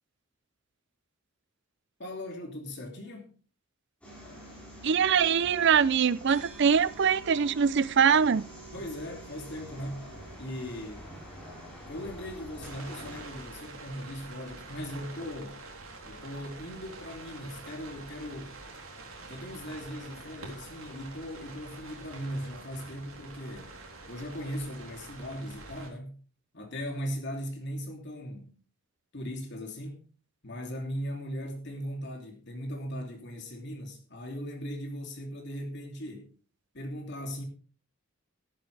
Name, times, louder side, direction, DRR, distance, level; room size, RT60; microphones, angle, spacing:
voice 1, 2.0-3.3 8.7-10.0 10.4-11.1 11.9-15.6 16.0-18.6 19.2-23.8 24.1-26.2 26.5-28.5 29.1-30.0 30.4-36.3 36.7-37.4, equal, 50° left, 2.8 m, -38 dB
sound 1, 4.0-13.2, equal, 5° left, 5.4 m, -47 dB
voice 2, 4.8-8.5, right 7 dB, 55° right, 0.4 m, -23 dB
sound 2, 6.2-12.7, right 5 dB, 90° right, 2.9 m, -52 dB
sound 3, 12.6-25.9, right 3 dB, 70° right, 3.4 m, -46 dB
13.5 x 11.5 x 3.4 m
head